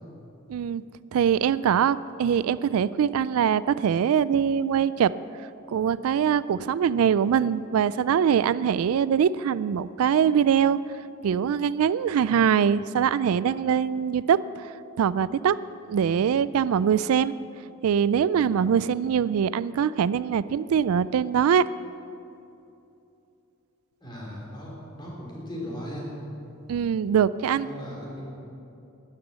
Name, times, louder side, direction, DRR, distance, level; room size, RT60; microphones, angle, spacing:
voice 1, 0.5-0.8 1.1-5.1 5.7-10.8 11.2-14.7 15.0-15.6 15.9-17.3 17.8-21.6 26.7-27.7, right 8 dB, 80° right, 17 dB, 0.3 m, -23 dB
voice 2, 24.0-26.1 27.6-28.2, equal, 20° left, -4 dB, 3.6 m, -37 dB
12.5 x 10.5 x 7.3 m, 2.8 s
head